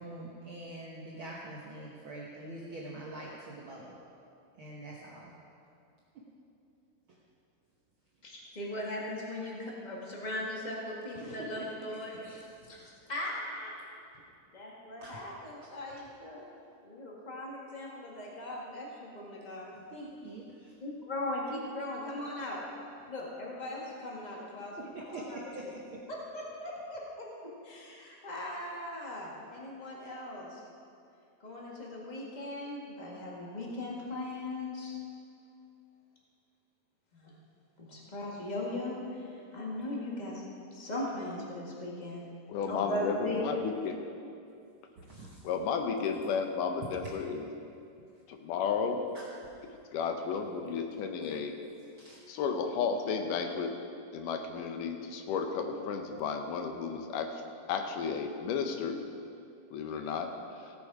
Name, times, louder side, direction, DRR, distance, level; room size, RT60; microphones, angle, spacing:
voice 1, 0.0-4.0 4.6-5.3 6.1-6.2 11.5-11.8 12.1-12.7 15.0-15.2 15.6-15.7 19.7-20.7 24.8-26.0 45.0-45.4 49.1-49.3 52.0-52.2, right 1 dB, 65° right, -4 dB, 1.3 m, -45 dB
voice 2, 8.2-12.2 12.7-13.7 14.5-16.4 16.8-19.7 20.8-22.6 23.1-25.4 26.1-27.0 27.6-30.6 31.4-34.9 37.1-37.3 37.8-40.4 40.7-42.3 42.6-43.6, left 1 dB, 25° left, -4 dB, 1.0 m, -39 dB
voice 3, 42.5-44.0 45.4-47.5 48.3-49.0 49.9-51.6 52.3-53.7 54.1-57.4 57.7-59.0 59.7-60.7, left 6 dB, 85° left, 5 dB, 2.4 m, -33 dB
16.0 x 6.9 x 4.8 m, 2.5 s
omnidirectional pair, 3.7 m